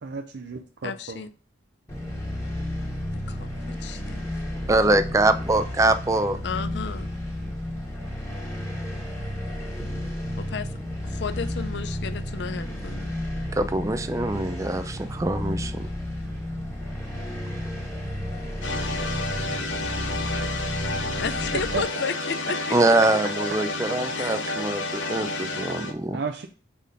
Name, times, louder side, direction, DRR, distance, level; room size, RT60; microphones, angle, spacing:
voice 1, 0.0-1.2 21.5-21.8 26.1-26.5, right 4 dB, 60° right, 4 dB, 0.5 m, -33 dB
voice 2, 0.8-1.3 3.3-4.2 6.4-7.1 10.4-10.8 11.0-13.1 21.2-22.8 24.1-24.5, left 5 dB, 60° left, 12 dB, 0.5 m, -33 dB
sound 1, 1.9-21.8, left 1 dB, 15° left, 1.7 m, -32 dB
voice 3, 4.7-6.4 13.5-15.9 22.7-26.2, right 2 dB, 15° right, 10 dB, 0.4 m, -23 dB
sound 2, 18.6-25.9, left 2 dB, 80° left, 1.0 m, -30 dB
5.0 x 4.4 x 5.2 m, 0.38 s
head